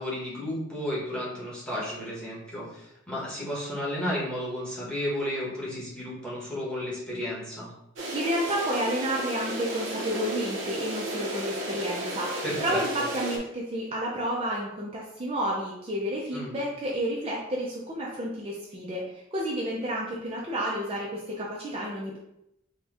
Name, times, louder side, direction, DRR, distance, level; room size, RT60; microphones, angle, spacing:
voice 1, 0.0-7.7 12.4-12.8 16.3-16.5, equal, 5° left, -7 dB, 1.2 m, -33 dB
sound 1, 8.0-13.4, right 1 dB, 75° right, 0.8 m, -33 dB
voice 2, 8.1-22.2, right 1 dB, 30° right, -4 dB, 0.5 m, -31 dB
4.2 x 2.3 x 3.5 m, 0.82 s
head